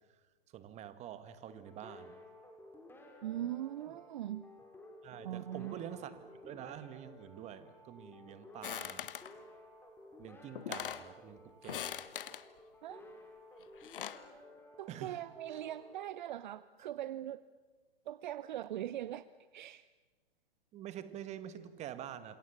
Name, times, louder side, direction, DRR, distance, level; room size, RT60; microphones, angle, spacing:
voice 1, 0.5-2.2 5.0-9.1 10.2-12.1 14.9-15.2 15.5-15.6 20.7-22.4, right 10 dB, 20° right, 12 dB, 1.8 m, -47 dB
sound 1, 1.5-16.9, left 1 dB, 5° left, 4.4 m, -56 dB
voice 2, 3.2-4.4 5.2-5.8 12.8-13.0 14.8-17.4 18.1-19.3 19.5-19.8, right 12 dB, 50° right, 17 dB, 0.8 m, -41 dB
sound 2, 8.6-9.3 10.2-10.3 10.6-11.1 11.6-12.4 13.6-14.3, left 10 dB, 60° left, 1.3 m, -41 dB
28.5 x 27.5 x 7.2 m, 1.2 s
hypercardioid pair, 120°, 30 cm